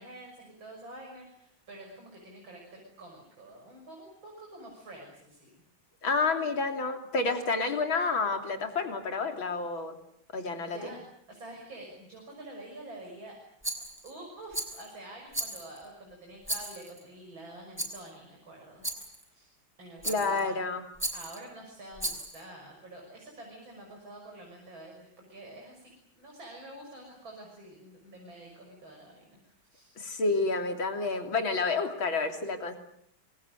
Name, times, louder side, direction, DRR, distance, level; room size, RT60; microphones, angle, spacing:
voice 1, 0.0-5.6 10.6-11.0 11.3-13.4 14.0-18.8 19.1-19.5 19.8-20.6 21.1-30.0, right 1 dB, 80° right, 0 dB, 7.1 m, -48 dB
voice 2, 6.0-10.0 10.3-10.9 20.1-20.9 30.0-32.8, left 3 dB, 85° left, 5 dB, 3.8 m, -29 dB
Rattle, 13.6-14.1 14.5-14.9 15.3-15.9 16.4-17.0 17.8-18.1 18.8-19.2 20.0-20.5 21.0-21.4 22.0-22.4, right 1 dB, 5° right, 5.1 m, -36 dB
27.0 x 22.5 x 7.9 m, 0.67 s
omnidirectional pair, 2.1 m